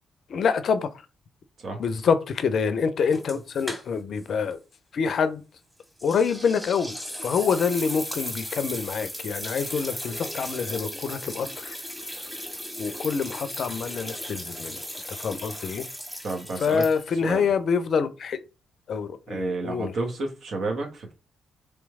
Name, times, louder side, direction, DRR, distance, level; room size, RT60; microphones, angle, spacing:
voice 1, 0.3-1.0 1.8-4.6 4.9-5.4 6.0-7.0 7.2-11.8 12.8-15.9 16.6-18.4 18.9-19.9, left 6 dB, 60° left, 0.5 m, -26 dB
sound 1, 3.1-4.2 4.5-4.6 6.0-17.3, equal, ahead, 1.7 m, -36 dB
voice 2, 16.2-16.8 17.2-17.5 19.3-21.1, right 3 dB, 60° right, 1.1 m, -31 dB
3.3 x 3.1 x 3.5 m
hypercardioid pair, 45°, 0 cm